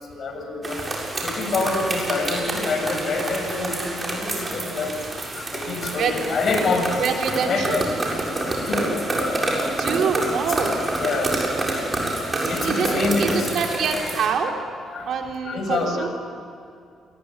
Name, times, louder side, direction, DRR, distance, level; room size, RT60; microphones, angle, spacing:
voice 1, 0.1-0.8 1.2-4.9 5.3-7.0 7.5-7.8 8.3-8.4 8.7-8.9 9.4-9.6 10.5-10.6 11.0-11.3 12.5-13.6 14.9-15.2 15.4-16.1, left 3 dB, 55° left, 4 dB, 6.9 m, -26 dB
sound 1, 0.6-14.3, right 2 dB, 25° right, 7.4 m, -27 dB
voice 2, 7.0-7.8 9.8-10.8 12.4-14.5 15.0-16.1, right 6 dB, 70° right, 2 dB, 4.0 m, -25 dB
28.0 x 21.5 x 10.0 m, 2.4 s
cardioid pair, 90°, 0 cm